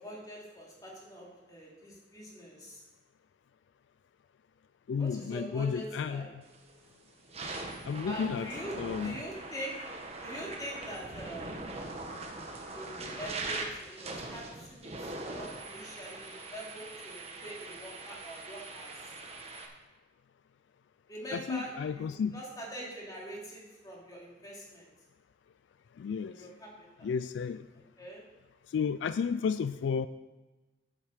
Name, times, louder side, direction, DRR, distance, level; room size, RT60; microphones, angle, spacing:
voice 1, 0.0-2.8 5.0-6.3 8.0-9.8 10.2-12.0 12.7-19.1 21.1-24.9 26.2-27.1 28.0-28.2, right 1 dB, 20° left, -3 dB, 2.8 m, -44 dB
voice 2, 4.9-6.2 7.8-8.5 8.7-9.2 21.3-22.4 26.0-26.5 27.0-27.7 28.7-30.1, left 6 dB, 75° left, 13 dB, 0.3 m, -32 dB
sound 1, 6.5-6.7 7.2-19.7, right 2 dB, 35° right, 1.3 m, -42 dB
9.0 x 7.8 x 6.5 m, 1.1 s
head